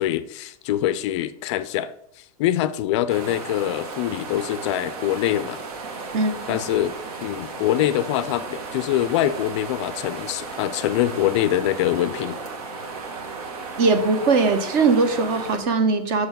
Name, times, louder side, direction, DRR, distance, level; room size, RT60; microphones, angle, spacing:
voice 1, 0.0-5.6 6.5-12.4, left 12 dB, 45° left, 14 dB, 0.4 m, -24 dB
sound 1, 3.1-15.6, right 4 dB, 70° right, 1.3 m, -35 dB
voice 2, 6.1-6.6 13.8-16.3, right 4 dB, 40° right, 8 dB, 1.1 m, -20 dB
6.5 x 4.6 x 5.3 m, 0.75 s
supercardioid pair, 145°, 20 cm